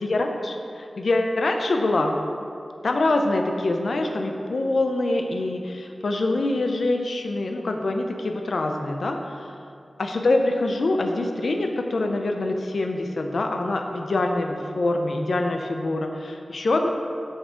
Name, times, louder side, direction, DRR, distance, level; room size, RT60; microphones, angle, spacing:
voice 1, 0.0-2.2 2.8-9.4 10.0-16.9, left 2 dB, 85° left, 4 dB, 0.5 m, -25 dB
6.4 x 4.6 x 5.1 m, 2.5 s
wide cardioid pair, 65°, 0 cm